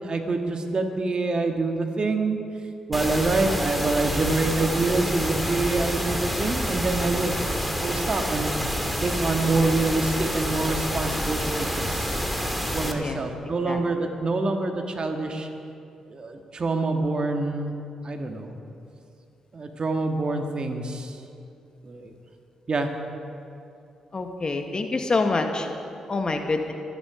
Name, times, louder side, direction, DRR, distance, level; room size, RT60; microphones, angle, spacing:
voice 1, 0.0-2.4 2.9-8.5 9.0-12.1 12.7-15.5 16.1-17.7 18.0-18.6 19.5-21.2 21.8-22.1 22.7-22.9, right 3 dB, 45° right, 4 dB, 1.9 m, -26 dB
sound 1, 2.9-12.9, equal, ahead, 2.3 m, -28 dB
voice 2, 24.1-25.7 26.1-26.7, left 3 dB, 40° left, 5 dB, 1.7 m, -26 dB
24.0 x 10.0 x 5.1 m, 2.6 s
hypercardioid pair, 40°, 2 cm